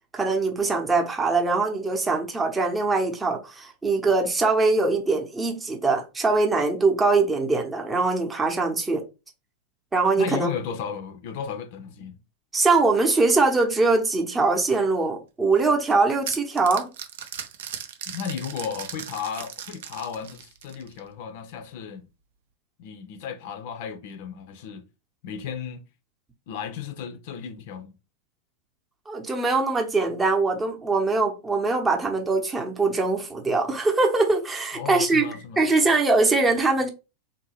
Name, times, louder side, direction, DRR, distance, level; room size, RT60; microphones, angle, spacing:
voice 1, 0.1-9.0 9.9-10.5 12.5-16.9 29.1-35.3 35.6-36.9, right 3 dB, 15° right, 0.8 m, -22 dB
voice 2, 10.2-12.2 18.1-22.0 22.8-24.9 25.2-25.8 26.5-27.9 34.7-35.7, left 7 dB, 50° left, 0.6 m, -34 dB
sound 1, 15.6-21.1, right 9 dB, 55° right, 0.6 m, -38 dB
3.6 x 2.7 x 3.1 m
figure-of-eight pair, 90°, 0 cm